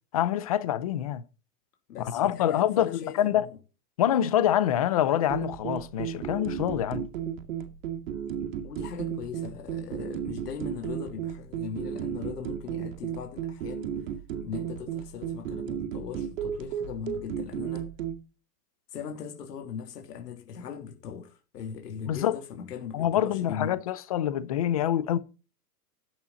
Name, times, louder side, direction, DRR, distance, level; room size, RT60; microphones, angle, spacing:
voice 1, 0.1-1.2 2.0-3.4 4.0-7.1 22.1-22.4 22.9-25.2, left 11 dB, 25° left, 0.5 m, -26 dB
voice 2, 1.9-3.6 8.6-13.9 14.4-17.9 18.9-23.8, left 7 dB, 85° left, 3.3 m, -39 dB
sound 1, 5.3-18.2, right 9 dB, 55° right, 2.3 m, -34 dB
12.0 x 8.7 x 4.0 m
supercardioid pair, 175°, 46 cm